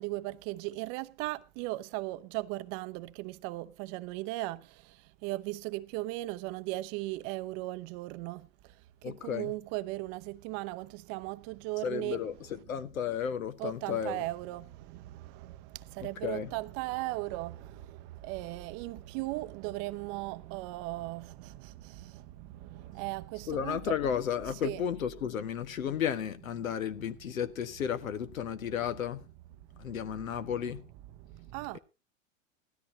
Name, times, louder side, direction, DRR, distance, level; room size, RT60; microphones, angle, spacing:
voice 1, 0.0-12.2 13.6-23.9 24.6-24.8 29.7-30.0 31.2-31.8, right 19 dB, 40° right, 0.7 m, -38 dB
voice 2, 9.0-9.5 11.8-14.2 16.0-16.5 23.5-29.2 29.8-30.8, left 8 dB, 80° left, 1.5 m, -33 dB
17.0 x 13.0 x 2.8 m
hypercardioid pair, 120°, 40 cm